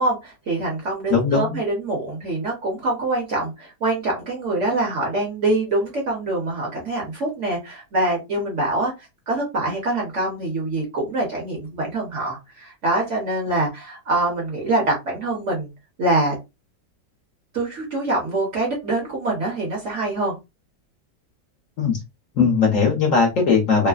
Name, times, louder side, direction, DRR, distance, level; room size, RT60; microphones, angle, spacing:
voice 1, 0.0-8.9 9.3-15.7 16.0-16.4 17.5-20.3, right 2 dB, 55° right, -1 dB, 1.0 m, -24 dB
voice 2, 1.1-1.6 21.8-22.0 22.3-23.9, left 5 dB, 60° left, 0 dB, 1.0 m, -18 dB
3.1 x 2.0 x 2.3 m, 0.24 s
omnidirectional pair, 1.9 m